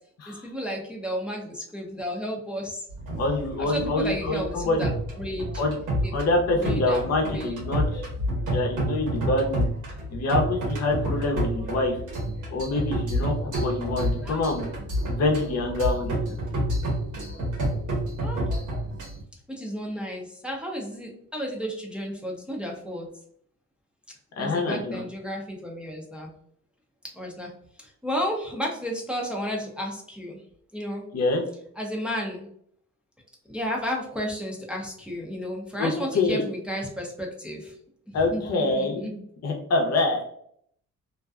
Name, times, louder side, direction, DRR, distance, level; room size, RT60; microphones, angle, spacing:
voice 1, 0.3-2.9 3.6-5.6 6.0-6.1 6.5-7.6 14.2-14.5 18.2-18.4 19.5-23.1 24.4-26.3 27.1-27.5 27.8-30.4 30.7-31.1 31.8-32.5 33.5-37.7 38.3-39.1, equal, 5° right, -1 dB, 0.6 m, -32 dB
sound 1, 2.9-19.2, right 1 dB, 90° right, 1.2 m, -29 dB
voice 2, 3.2-4.9 5.6-5.8 6.1-8.1 8.5-9.6 10.1-12.0 12.5-14.7 15.1-16.2 24.4-25.0 31.1-31.4 35.8-36.4 38.1-40.3, left 2 dB, 60° left, 1 dB, 0.7 m, -26 dB
2.6 x 2.2 x 2.3 m, 0.66 s
cardioid pair, 90°, 30 cm